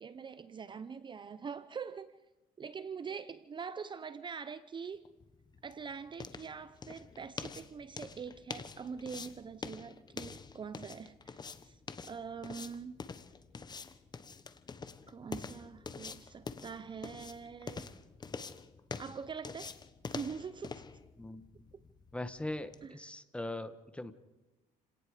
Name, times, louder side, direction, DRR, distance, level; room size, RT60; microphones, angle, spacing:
voice 1, 0.0-2.2 2.6-5.0 5.6-11.4 11.6-13.1 15.1-17.9 19.0-19.7 20.1-20.8 22.8-23.0, right 6 dB, 30° right, 0.7 m, -44 dB
sound 1, 5.1-22.9, left 5 dB, 25° left, 1.2 m, -46 dB
voice 2, 21.2-21.6 22.1-24.1, left 1 dB, 5° left, 1.4 m, -41 dB
30.0 x 18.5 x 5.0 m
cardioid pair, 115°, 16 cm